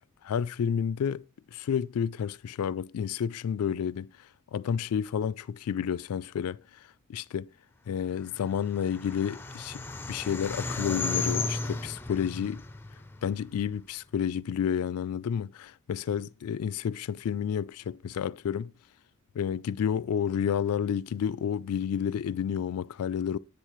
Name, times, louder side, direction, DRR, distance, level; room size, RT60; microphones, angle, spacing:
voice 1, 0.2-7.5 7.9-12.6 13.2-18.7 19.3-23.4, left 8 dB, 85° left, 0.3 m, -30 dB
sound 1, 8.3-13.7, left 3 dB, 10° left, 0.5 m, -34 dB
10.0 x 8.2 x 3.0 m
head